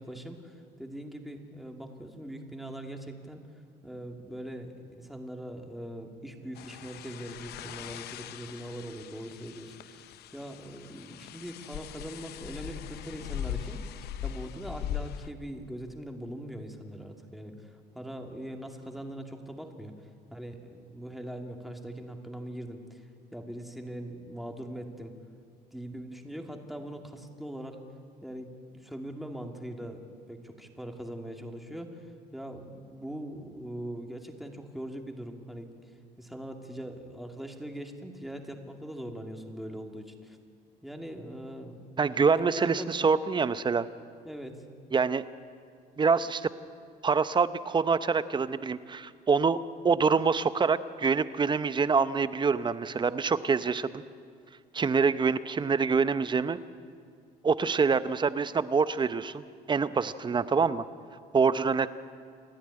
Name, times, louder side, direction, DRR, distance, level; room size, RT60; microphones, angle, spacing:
voice 1, 0.0-3.4 3.8-25.1 25.7-27.8 28.2-30.0 30.3-40.4 40.8-41.8 42.3-43.0 44.2-44.7, right 1 dB, ahead, 3 dB, 2.4 m, -41 dB
sound 1, 6.6-15.3, left 10 dB, 70° left, 0.8 m, -40 dB
voice 2, 42.0-43.9 44.9-45.2 46.0-46.5 47.0-49.6 49.8-54.0 54.7-56.6 57.4-59.4 59.7-60.8 61.3-61.9, right 5 dB, 25° right, 13 dB, 0.8 m, -25 dB
28.5 x 11.5 x 9.8 m, 2.2 s
cardioid pair, 110°, 17 cm